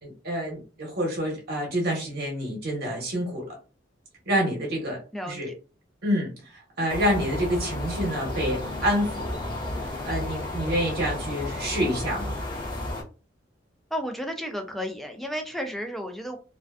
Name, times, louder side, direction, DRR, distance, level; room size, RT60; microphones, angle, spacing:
voice 1, 0.0-3.5 4.3-5.0 5.3-5.5 6.0-9.4 9.8-12.4, equal, 55° right, 0 dB, 0.9 m, -28 dB
sound 1, 6.9-13.0, left 1 dB, 25° left, 0.7 m, -32 dB
voice 2, 13.9-16.4, equal, ahead, 5 dB, 0.4 m, -32 dB
2.5 x 2.2 x 2.3 m, 0.35 s
head